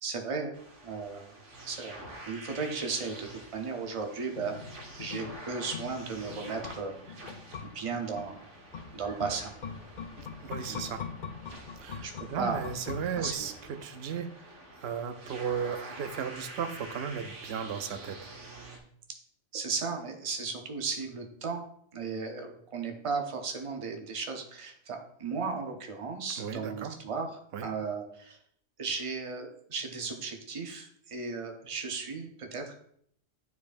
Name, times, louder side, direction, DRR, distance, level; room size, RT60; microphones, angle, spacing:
voice 1, 0.0-0.5 0.8-1.3 1.7-1.9 2.3-4.6 5.0-7.2 7.7-8.5 8.9-9.5 10.7-10.8 12.0-12.6 13.1-13.3 19.5-21.6 21.9-27.3 27.6-28.4 28.8-32.7, right 4 dB, 30° right, 4 dB, 0.7 m, -35 dB
sound 1, 0.5-18.8, right 2 dB, 80° right, 1.5 m, -47 dB
sound 2, 4.3-13.9 14.2-14.3, left 6 dB, 50° left, 0.6 m, -43 dB
sound 3, 8.7-13.7, right 1 dB, 25° left, 2.7 m, -54 dB
voice 2, 10.4-11.0 11.8-18.3 26.4-27.0 27.5-27.7, right 7 dB, 65° right, 7 dB, 0.8 m, -36 dB
9.3 x 4.7 x 2.5 m, 0.67 s
omnidirectional pair, 1.2 m